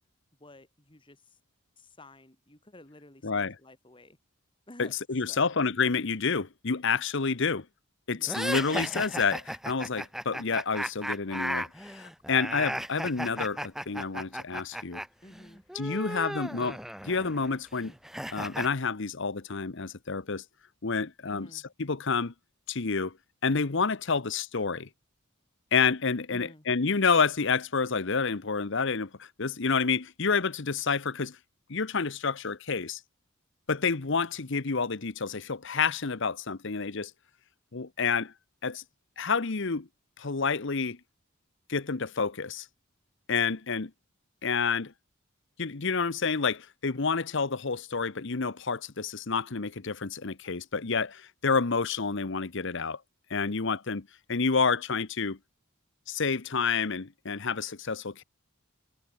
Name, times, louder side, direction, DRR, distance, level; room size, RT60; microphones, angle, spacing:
voice 1, 0.4-1.4 1.8-4.2 4.7-4.9 5.3-5.5 8.1-8.6 15.2-16.4 21.3-21.6 26.3-26.7, left 1 dB, 25° left, 3.1 m, -52 dB
voice 2, 3.2-3.5 4.8-7.6 8.1-15.0 15.7-16.8 17.0-17.9 18.3-20.4 20.8-21.5 21.8-22.3 22.7-23.1 23.4-24.9 25.7-31.4 31.7-33.0 33.7-37.1 37.7-38.3 38.6-38.8 39.2-39.9 40.2-41.0 41.7-42.6 43.3-43.9 44.4-44.9 45.6-53.0 53.3-55.4 56.1-58.2, left 5 dB, 60° left, 1.0 m, -29 dB
sound 1, 8.3-15.1 15.3-18.7, equal, ahead, 0.9 m, -35 dB
head